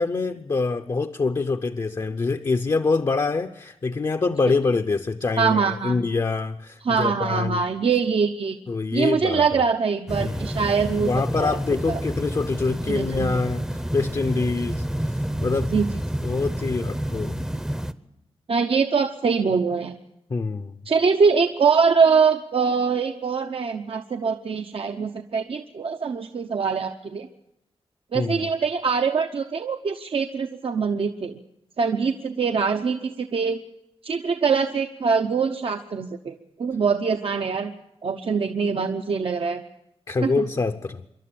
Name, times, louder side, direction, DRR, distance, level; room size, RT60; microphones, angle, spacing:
voice 1, 0.0-7.6 8.7-9.6 10.2-10.6 11.0-14.9 15.4-15.7 16.2-17.4 20.3-20.8 28.1-28.5 40.1-41.0, left 4 dB, 40° left, 0.7 m, -25 dB
voice 2, 5.4-6.0 6.8-8.6 8.9-11.1 11.4-11.6 11.9-12.0 12.9-13.4 15.7-15.9 18.5-19.9 20.9-27.3 28.1-31.4 31.8-33.6 34.0-37.7 38.0-39.6 40.2-40.4, right 5 dB, 60° right, 0.8 m, -23 dB
sound 1, 10.1-17.9, right 1 dB, 5° right, 0.7 m, -29 dB
26.0 x 12.0 x 8.5 m
wide cardioid pair, 145°, 11 cm